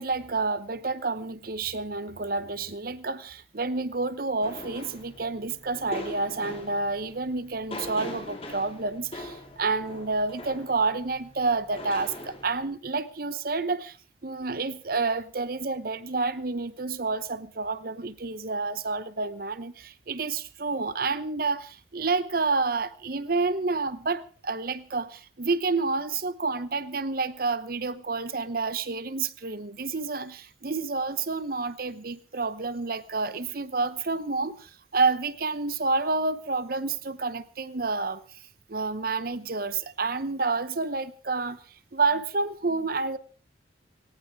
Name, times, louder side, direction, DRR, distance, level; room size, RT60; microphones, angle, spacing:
voice 1, 0.0-14.0 14.2-41.6 41.9-43.2, right 3 dB, 50° right, 14 dB, 0.9 m, -29 dB
sound 1, 4.4-12.7, left 1 dB, 30° left, 3.1 m, -42 dB
19.0 x 18.5 x 3.6 m, 0.37 s
head